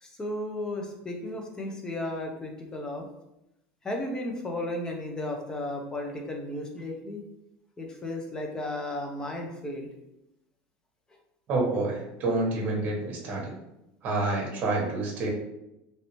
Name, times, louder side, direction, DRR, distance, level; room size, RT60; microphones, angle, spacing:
voice 1, 0.0-3.1 3.8-7.2 7.8-9.9, left 1 dB, 15° left, 2 dB, 0.6 m, -34 dB
voice 2, 11.5-13.5 14.0-15.3, right 2 dB, 40° right, -2 dB, 1.1 m, -28 dB
3.2 x 2.7 x 3.0 m, 0.88 s
supercardioid pair, 140°, 5 cm